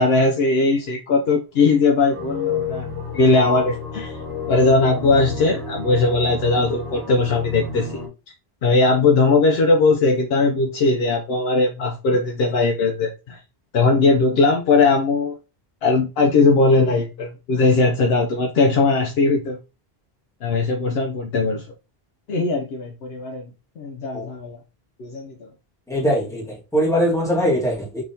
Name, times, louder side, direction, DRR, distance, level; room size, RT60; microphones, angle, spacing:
voice 1, 0.0-2.9 3.1-4.1 4.5-8.0 8.6-13.4 13.7-15.4 15.8-19.6 20.4-21.6 22.3-23.5 23.8-24.6 25.0-25.3, left 3 dB, 75° left, 0.8 m, -19 dB
sound 1, 2.1-8.1, left 5 dB, 80° right, 1.4 m, -30 dB
voice 2, 25.9-28.0, equal, 5° left, 1.5 m, -21 dB
3.5 x 3.4 x 2.7 m
omnidirectional pair, 1.0 m